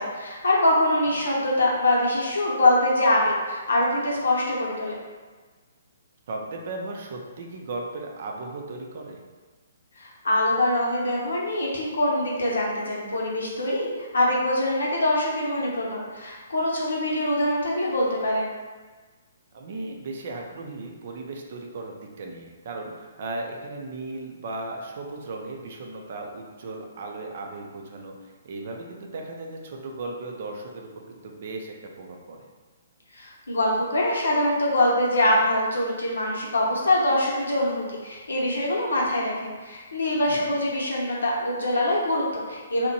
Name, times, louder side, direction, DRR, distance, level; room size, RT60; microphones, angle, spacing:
voice 1, 0.0-5.0 10.0-13.9 14.1-18.5 33.1-42.9, left 1 dB, 85° left, -3 dB, 0.7 m, -24 dB
voice 2, 6.3-9.2 19.5-32.5 40.3-40.5, right 2 dB, 55° right, 1 dB, 0.4 m, -36 dB
2.7 x 2.1 x 2.8 m, 1.4 s
hypercardioid pair, 140°, 0 cm